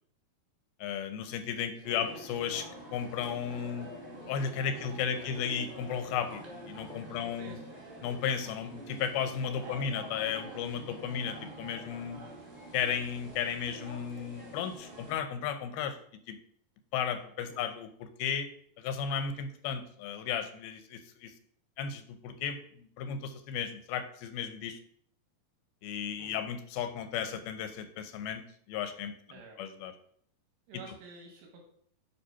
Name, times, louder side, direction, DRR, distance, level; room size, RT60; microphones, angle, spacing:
voice 1, 0.8-3.9 4.3-7.6 8.0-12.2 12.7-16.0 16.3-16.4 16.9-18.5 18.8-21.3 21.8-24.8 25.8-28.4 28.7-29.1 29.6-29.9, left 7 dB, 90° left, 9 dB, 2.7 m, -34 dB
voice 2, 1.6-2.0 4.6-5.3 7.1-7.8 9.6-9.9 17.4-17.6 26.2-26.5 29.3-29.6 30.7-31.6, right 3 dB, 85° right, 1 dB, 3.1 m, -50 dB
sound 1, 1.8-15.1, right 1 dB, 15° right, 1.8 m, -46 dB
9.6 x 3.4 x 5.6 m, 0.62 s
omnidirectional pair, 4.2 m